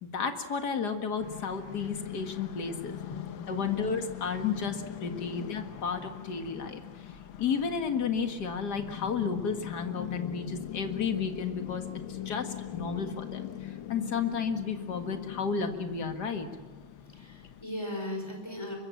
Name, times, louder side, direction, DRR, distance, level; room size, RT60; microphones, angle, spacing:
voice 1, 0.0-3.0 3.5-6.8 7.4-11.8 12.3-13.5 13.9-16.5, left 6 dB, 50° left, 6 dB, 2.3 m, -32 dB
sound 1, 1.2-17.6, left 10 dB, 70° left, 1.7 m, -41 dB
voice 2, 17.1-18.8, left 1 dB, 10° left, 3 dB, 5.1 m, -38 dB
24.5 x 23.0 x 7.3 m, 1.3 s
omnidirectional pair, 2.3 m